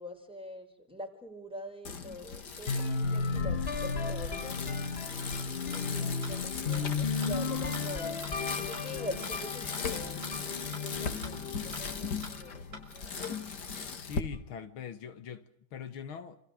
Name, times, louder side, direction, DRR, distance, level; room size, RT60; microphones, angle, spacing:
voice 1, 0.0-5.1 5.7-13.2, left 1 dB, ahead, 4.7 m, -45 dB
Bicycle, 1.9-14.2, left 5 dB, 55° left, 2.6 m, -38 dB
sound 1, 2.7-12.5, left 4 dB, 35° left, 1.5 m, -34 dB
sound 2, 5.7-5.8 6.2-6.3 6.7-6.8 7.2-7.3 7.7-7.8 8.2-8.3 8.7-8.8 9.2-9.3 9.7-9.8 10.2-10.3 10.7-10.8 11.2-11.3 11.7-11.8 12.2-12.3 12.7-12.8 13.2-13.3, right 1 dB, 45° right, 7.0 m, -44 dB
voice 2, 13.9-16.4, left 7 dB, 85° left, 2.4 m, -42 dB
28.5 x 27.5 x 6.5 m
omnidirectional pair, 2.2 m